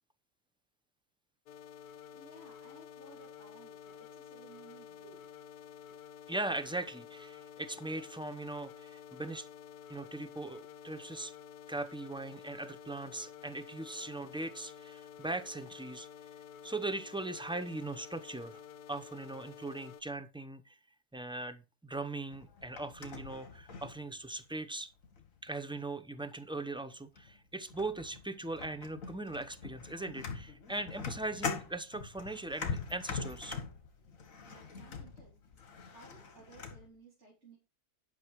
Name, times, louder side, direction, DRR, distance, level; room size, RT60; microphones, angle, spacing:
sound 1, 1.5-20.0, left 8 dB, 85° left, 1.2 m, -51 dB
voice 1, 2.1-5.3 34.5-35.6 35.9-37.6, right 3 dB, 50° right, 3.4 m, -58 dB
voice 2, 6.3-9.5 9.9-11.3 11.7-16.1 16.6-18.6 18.9-20.8 21.1-24.9 25.4-33.6, right 2 dB, 5° right, 0.5 m, -40 dB
sound 2, 22.3-24.5 25.0-25.5 26.5-26.6 27.2-27.4 27.7-36.9, left 5 dB, 60° left, 1.9 m, -43 dB
11.0 x 6.2 x 4.7 m
omnidirectional pair, 1.6 m